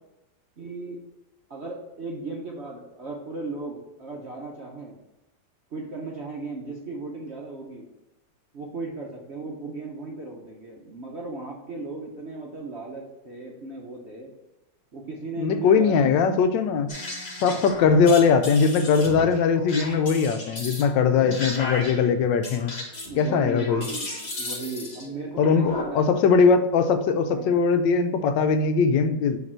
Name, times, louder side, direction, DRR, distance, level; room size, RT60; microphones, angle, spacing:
voice 1, 0.6-1.0 1.5-4.9 5.7-7.8 8.5-14.3 14.9-16.4 17.4-17.7 23.1-24.1 24.4-26.1 27.2-27.6, right 3 dB, 50° right, -1 dB, 0.8 m, -36 dB
voice 2, 15.4-16.9 17.4-22.8 23.2-23.9 25.4-29.4, left 5 dB, 80° left, 8 dB, 1.2 m, -20 dB
sound 1, 16.9-25.8, left 1 dB, 35° left, 1.5 m, -35 dB
6.5 x 3.3 x 4.4 m, 1.0 s
omnidirectional pair, 2.0 m